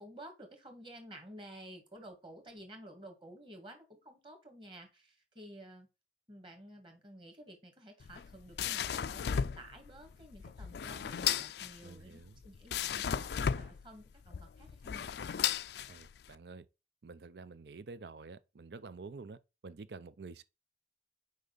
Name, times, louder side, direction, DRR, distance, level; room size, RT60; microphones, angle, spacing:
voice 1, 0.0-5.9 6.3-15.1, right 1 dB, 30° right, 2.0 m, -52 dB
sound 1, 8.0-16.3, left 8 dB, 70° left, 0.4 m, -36 dB
voice 2, 11.8-12.4 15.9-16.7 17.0-19.4 19.6-20.4, right 4 dB, 75° right, 0.5 m, -48 dB
6.6 x 5.0 x 4.0 m
head